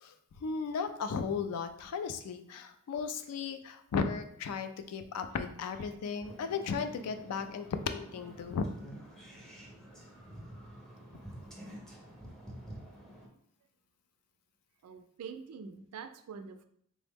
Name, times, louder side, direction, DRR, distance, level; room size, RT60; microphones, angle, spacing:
voice 1, 0.0-8.6, left 5 dB, 80° left, 9 dB, 0.3 m, -35 dB
voice 2, 5.6-6.1 14.8-16.6, right 6 dB, 85° right, 9 dB, 0.3 m, -46 dB
sound 1, 6.2-13.3, right 1 dB, 5° left, 0.5 m, -49 dB
3.4 x 2.0 x 3.4 m, 0.69 s
head